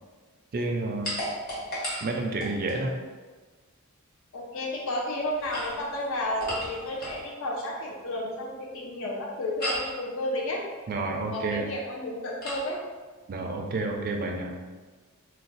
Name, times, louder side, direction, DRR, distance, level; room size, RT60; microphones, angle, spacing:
voice 1, 0.5-1.2 2.0-2.9 10.9-11.7 13.3-14.6, right 2 dB, 45° right, 2 dB, 0.4 m, -30 dB
sound 1, 1.0-2.8 5.3-7.3 9.6-10.0 12.4-12.7, equal, 45° left, 1.0 m, -34 dB
voice 2, 4.3-10.6 11.3-12.8, left 1 dB, 65° left, -3 dB, 0.5 m, -32 dB
2.5 x 2.2 x 3.9 m, 1.3 s
head